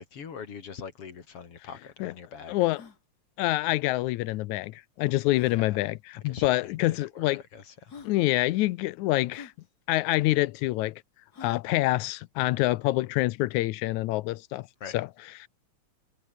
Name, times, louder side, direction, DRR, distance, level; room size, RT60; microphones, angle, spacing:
voice 1, 0.0-2.6 5.5-5.8 6.2-7.9 14.8-15.0, left 6 dB, 50° left, 3.2 m, -43 dB
sound 1, 1.1-1.2 1.4-1.5 2.0-2.1 2.6-3.0 4.3-4.4 5.3-5.6 6.6-6.7 7.5-7.6 7.9-8.2 9.3-9.6 11.3-11.7, left 5 dB, 35° left, 2.3 m, -48 dB
voice 2, 2.5-2.8 3.4-7.4 8.0-9.5 9.9-11.0 11.4-14.7 14.9-15.1 15.4-15.5, left 18 dB, 80° left, 2.0 m, -26 dB
omnidirectional pair, 3.4 m